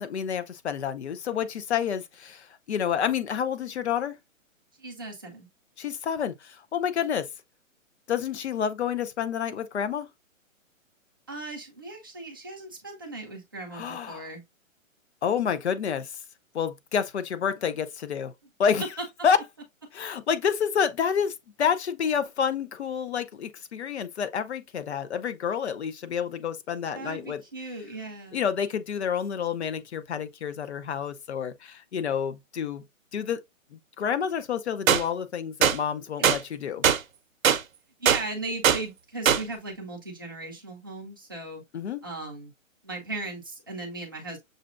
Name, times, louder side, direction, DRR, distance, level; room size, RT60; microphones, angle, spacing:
voice 1, 0.0-4.1 5.8-7.3 8.1-10.1 13.7-14.3 15.2-16.1 16.5-18.3 18.6-18.8 19.2-19.4 19.9-27.4 28.3-32.8 33.1-33.4 33.7-36.8 41.7-42.0, left 7 dB, 55° left, 0.6 m, -29 dB
voice 2, 4.8-5.5 11.3-14.4 19.0-19.1 26.9-28.4 36.2-36.3 38.0-41.6 42.0-42.5 42.8-44.4, right 2 dB, 15° right, 0.5 m, -37 dB
sound 1, 34.9-35.0 35.6-35.8 36.2-36.4 36.8-37.0 37.4-37.6 38.1-38.2 38.6-38.8 39.3-39.4, right 9 dB, 80° right, 0.7 m, -20 dB
6.4 x 2.2 x 2.4 m
hypercardioid pair, 160°, 40 cm